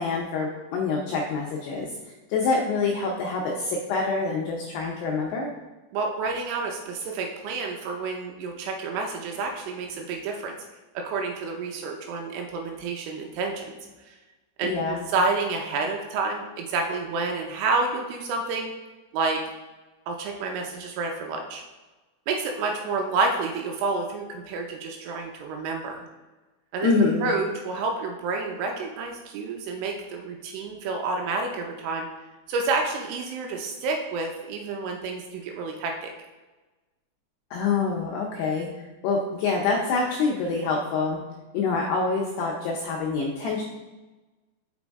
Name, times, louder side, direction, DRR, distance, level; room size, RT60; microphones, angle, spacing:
voice 1, 0.0-5.5 14.6-15.1 26.8-27.3 37.5-41.2 41.5-43.6, left 4 dB, 90° left, -1 dB, 2.4 m, -26 dB
voice 2, 5.9-10.6 11.0-13.8 14.0-14.2 14.6-14.7 15.1-18.7 19.1-19.4 20.1-21.6 22.3-26.1 26.7-26.9 27.2-32.1 32.5-36.1, right 3 dB, 85° right, 2 dB, 3.0 m, -29 dB
6.1 x 5.9 x 3.5 m, 1.2 s
omnidirectional pair, 5.7 m